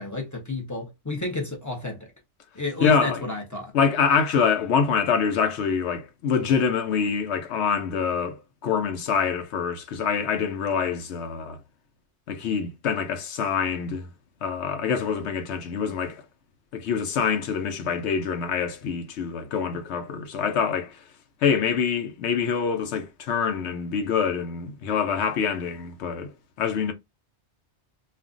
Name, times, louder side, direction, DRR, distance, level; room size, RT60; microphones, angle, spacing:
voice 1, 0.0-2.1 2.6-3.7, left 2 dB, 20° left, 0.5 m, -31 dB
voice 2, 2.8-3.2 3.7-11.6 12.3-14.1 14.4-16.2 16.7-21.0 21.4-26.3 26.6-26.9, left 6 dB, 75° left, 0.9 m, -25 dB
2.4 x 2.1 x 3.6 m
omnidirectional pair, 1.2 m